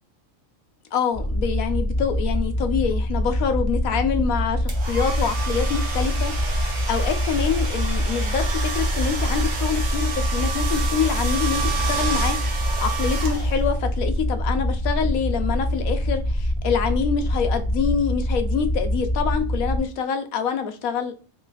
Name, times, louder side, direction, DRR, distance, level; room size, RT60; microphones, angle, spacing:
voice 1, 0.9-16.2 16.6-21.1, left 7 dB, 90° left, 1.2 m, -26 dB
sound 1, 1.1-19.8, equal, 10° left, 1.0 m, -25 dB
sound 2, 4.7-13.8, right 5 dB, 60° right, 1.2 m, -30 dB
3.2 x 3.0 x 3.9 m
omnidirectional pair, 1.4 m